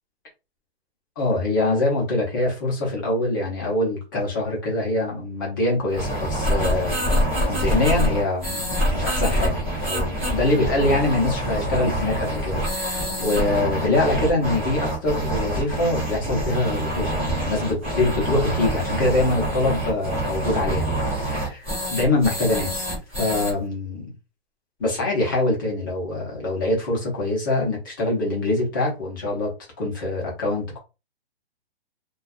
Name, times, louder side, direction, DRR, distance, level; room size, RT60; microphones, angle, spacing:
voice 1, 1.2-20.9 21.2-22.9 23.2-24.1 24.8-29.5 29.8-30.8, left 2 dB, 20° left, 0.6 m, -24 dB
sound 1, 5.9-23.5, right 1 dB, 15° right, 0.4 m, -26 dB
2.3 x 2.2 x 2.4 m
hypercardioid pair, 170°, 33 cm